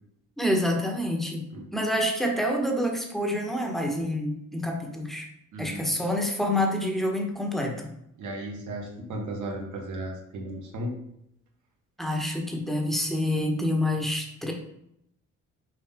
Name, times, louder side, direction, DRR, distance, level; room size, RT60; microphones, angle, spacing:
voice 1, 0.4-1.5 1.7-5.3 5.6-7.9 12.0-14.5, left 1 dB, ahead, 1 dB, 1.3 m, -27 dB
voice 2, 5.5-5.9 8.2-10.9, right 1 dB, 75° right, 0 dB, 1.6 m, -35 dB
6.3 x 4.0 x 3.7 m, 0.77 s
cardioid pair, 90°, 30 cm